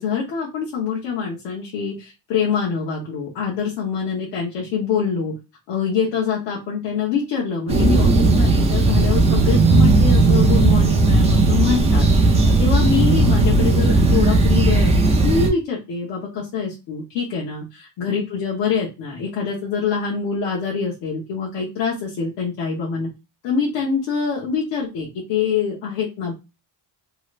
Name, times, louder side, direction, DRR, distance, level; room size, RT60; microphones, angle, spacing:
voice 1, 0.0-5.3 5.7-23.1 23.4-26.3, left 6 dB, 70° left, -4 dB, 1.0 m, -25 dB
sound 1, 7.7-15.5, right 2 dB, 15° right, 0.4 m, -16 dB
3.0 x 2.4 x 3.1 m, 0.26 s
cardioid pair, 165°, 43 cm